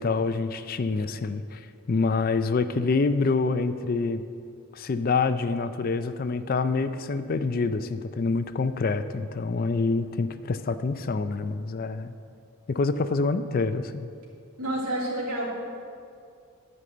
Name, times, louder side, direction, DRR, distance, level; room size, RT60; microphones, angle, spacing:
voice 1, 0.0-4.2 4.7-12.1 12.7-14.1, left 4 dB, 40° left, 11 dB, 0.4 m, -26 dB
voice 2, 14.6-15.5, right 1 dB, 80° right, -4 dB, 2.9 m, -29 dB
11.5 x 5.3 x 7.7 m, 2.4 s
head